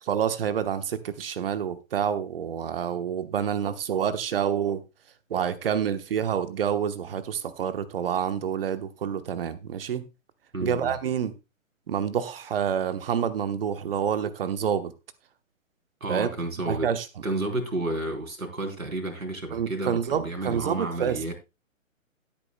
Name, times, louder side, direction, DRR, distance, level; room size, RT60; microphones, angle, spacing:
voice 1, 0.0-4.8 5.3-10.1 10.6-11.3 11.9-14.9 16.1-16.3 16.7-17.1 19.5-21.2, right 8 dB, 45° right, 1.1 m, -28 dB
voice 2, 10.5-10.9 16.0-16.9 17.2-21.3, right 2 dB, 80° right, 3.8 m, -31 dB
17.0 x 8.8 x 2.2 m
figure-of-eight pair, 135°, 41 cm